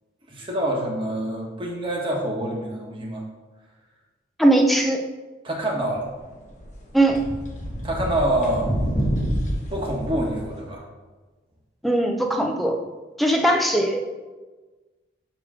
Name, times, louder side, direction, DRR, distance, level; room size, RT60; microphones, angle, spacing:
voice 1, 0.3-3.2 5.4-6.1 7.8-8.7 9.7-10.8, right 1 dB, 25° right, -1 dB, 1.2 m, -26 dB
voice 2, 4.4-5.0 6.9-7.3 11.8-12.7 13.2-14.0, right 1 dB, ahead, 2 dB, 0.5 m, -19 dB
sound 1, 6.2-6.3 6.6-10.6, equal, 40° left, 1.2 m, -27 dB
7.3 x 3.0 x 6.1 m, 1.3 s
head